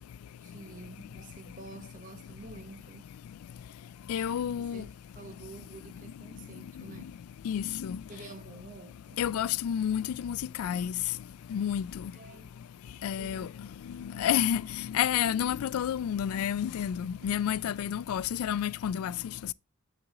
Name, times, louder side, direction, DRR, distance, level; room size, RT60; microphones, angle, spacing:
voice 1, 0.4-3.1 4.1-7.1 8.1-9.2 12.1-12.6 13.2-14.4 17.2-17.5, right 3 dB, 35° right, 0.9 m, -49 dB
voice 2, 4.1-4.8 7.5-8.0 9.2-10.9 11.5-11.8 13.0-13.5 14.2-14.6 14.9-19.1, left 9 dB, 85° left, 0.3 m, -29 dB
7.4 x 5.9 x 3.7 m
head